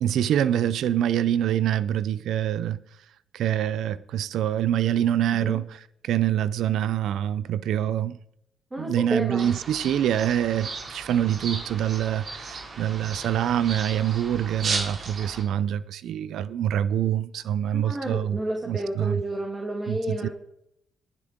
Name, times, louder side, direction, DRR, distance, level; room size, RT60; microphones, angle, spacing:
voice 1, 0.0-2.8 3.3-5.7 6.0-8.2 8.8-18.4 18.7-19.2 19.9-20.3, right 10 dB, 75° right, 0.5 m, -25 dB
voice 2, 8.7-9.5 17.7-20.3, right 1 dB, 20° right, 2.4 m, -31 dB
sound 1, 9.4-15.4, right 4 dB, 55° right, 2.7 m, -35 dB
18.5 x 8.3 x 3.7 m
cardioid pair, 90°, 0 cm